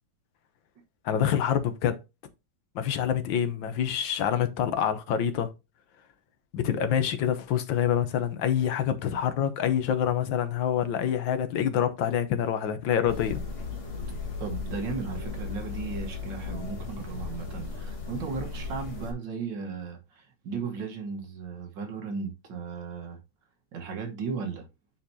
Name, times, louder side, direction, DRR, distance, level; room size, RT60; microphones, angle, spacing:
voice 1, 1.0-2.0 2.7-5.5 6.5-13.4, left 9 dB, 80° left, 1.6 m, -26 dB
sound 1, 13.1-19.1, left 4 dB, 30° left, 1.7 m, -36 dB
voice 2, 14.4-23.2 23.7-24.7, right 5 dB, 70° right, 2.0 m, -36 dB
9.3 x 4.4 x 2.7 m
omnidirectional pair, 2.1 m